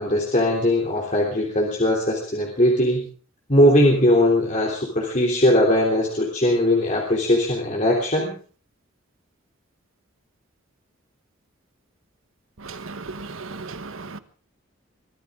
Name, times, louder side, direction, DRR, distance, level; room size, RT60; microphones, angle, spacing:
voice 1, 0.0-3.0 3.5-8.3, left 1 dB, 35° left, 3.3 m, -20 dB
voice 2, 12.6-14.2, right 3 dB, 75° right, 1.3 m, -36 dB
23.5 x 15.5 x 3.8 m
head